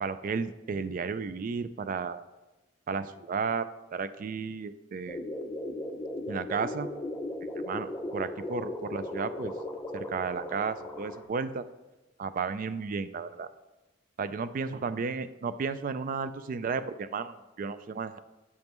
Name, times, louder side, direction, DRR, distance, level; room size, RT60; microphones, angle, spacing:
voice 1, 0.0-2.3 2.9-3.7 3.9-5.2 6.3-6.9 7.6-9.5 9.9-11.7 12.2-13.5 14.2-18.2, right 5 dB, 45° right, 13 dB, 0.3 m, -33 dB
sound 1, 5.1-11.2, left 1 dB, 15° left, 0.6 m, -37 dB
8.1 x 5.2 x 3.0 m, 1.1 s
head